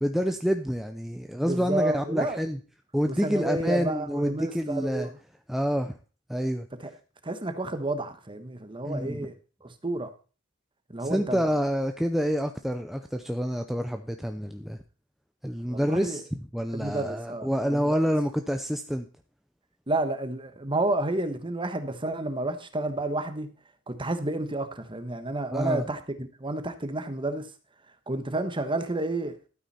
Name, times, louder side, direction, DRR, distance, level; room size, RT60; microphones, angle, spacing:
voice 1, 0.0-2.6 2.9-5.1 5.5-5.9 6.3-6.7 8.8-9.3 11.0-14.8 15.4-19.1 25.5-25.8, equal, ahead, 0.6 m, -28 dB
voice 2, 1.4-2.4 3.2-5.1 6.8-6.9 7.2-9.3 9.6-10.1 10.9-11.4 15.7-16.2 16.7-18.0 19.9-23.5 23.9-27.5 28.1-29.5, right 2 dB, 25° right, 1.3 m, -30 dB
12.5 x 9.0 x 4.3 m
head